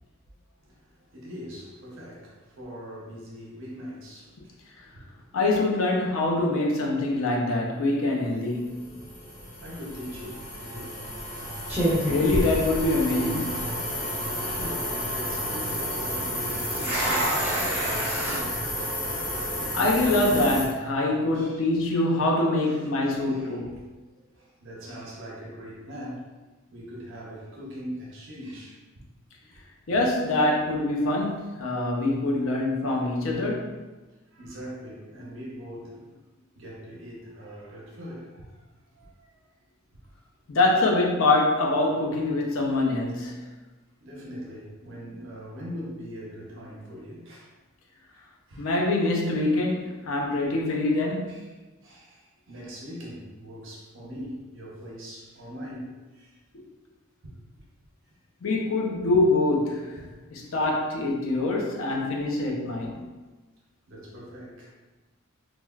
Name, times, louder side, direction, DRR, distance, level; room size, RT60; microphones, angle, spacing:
voice 1, 0.6-5.3 9.3-9.4 9.6-11.8 14.4-18.7 19.2-19.3 19.6-19.7 21.3-21.6 22.6-23.8 24.1-26.3 26.7-29.0 29.5-29.6 31.7-31.9 34.3-36.1 36.6-38.6 38.9-39.4 44.0-47.5 48.5-48.7 51.3-51.5 51.8-56.4 57.2-57.4 62.7-63.0 63.9-64.7, equal, 65° right, 0.7 m, -42 dB
voice 2, 5.3-8.9 12.1-13.7 19.7-23.8 29.9-33.8 40.5-43.5 48.6-51.4 58.4-60.0 60.3-63.1, left 2 dB, 75° left, 0.5 m, -24 dB
sound 1, 8.5-20.7, equal, 45° left, 0.8 m, -32 dB
sound 2, 10.1-10.4 11.2-11.4 11.7-13.3 13.6-13.7 14.3-14.7 16.4-18.4, right 1 dB, 10° right, 0.9 m, -28 dB
3.1 x 2.1 x 2.3 m
head